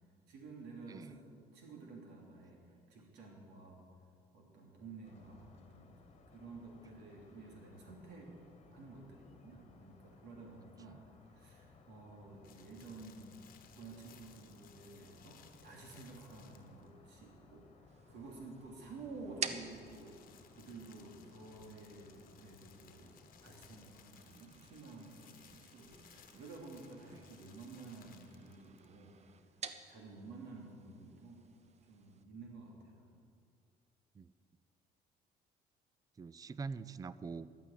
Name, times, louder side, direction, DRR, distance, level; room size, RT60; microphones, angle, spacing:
voice 1, 0.3-1.2 1.5-3.9 4.3-6.0 6.3-8.3 8.7-11.0 11.3-13.4 13.8-20.1 20.5-29.1 29.9-31.4 31.8-33.1, right 3 dB, 85° right, -1 dB, 2.9 m, -52 dB
voice 2, 0.9-1.2 26.3-26.4 27.1-27.2 34.1-34.3 36.2-37.5, right 4 dB, 20° right, 17 dB, 0.4 m, -44 dB
sound 1, 5.0-24.1, left 4 dB, 40° left, 1.5 m, -63 dB
sound 2, 12.4-16.9 19.4-29.0, left 9 dB, 55° left, 1.1 m, -63 dB
sound 3, 17.9-32.2, right 6 dB, 40° right, 0.8 m, -51 dB
11.5 x 9.2 x 8.5 m, 2.3 s
cardioid pair, 110°, 17 cm